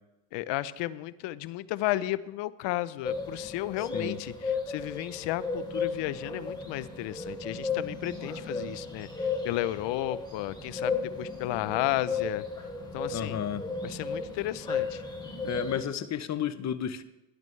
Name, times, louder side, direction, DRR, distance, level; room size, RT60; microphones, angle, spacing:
voice 1, 0.3-12.4 12.9-13.4 13.8-15.0, left 16 dB, 75° left, 16 dB, 0.7 m, -33 dB
sound 1, 3.0-15.8, left 4 dB, 10° left, 3.3 m, -35 dB
voice 2, 13.1-13.7 15.4-17.0, left 9 dB, 40° left, 12 dB, 0.9 m, -32 dB
17.5 x 11.0 x 3.3 m, 1.0 s
cardioid pair, 100°, 44 cm